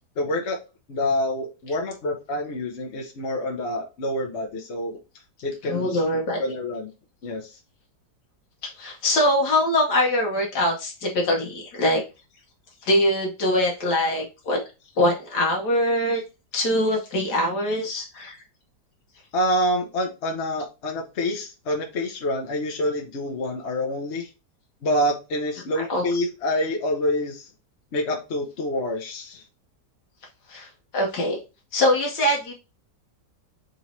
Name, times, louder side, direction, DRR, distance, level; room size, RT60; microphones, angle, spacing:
voice 1, 0.2-0.6 0.9-5.0 5.4-6.9 7.2-7.6 19.3-24.3 24.8-27.5 27.9-29.4, left 1 dB, 55° left, 1 dB, 0.8 m, -27 dB
voice 2, 5.6-6.4 8.8-12.0 12.8-14.6 15.0-16.2 16.5-18.4 25.7-26.1 30.5-31.4 31.7-32.5, left 1 dB, 75° left, 0 dB, 1.5 m, -23 dB
4.0 x 3.1 x 4.0 m, 0.29 s
omnidirectional pair, 1.8 m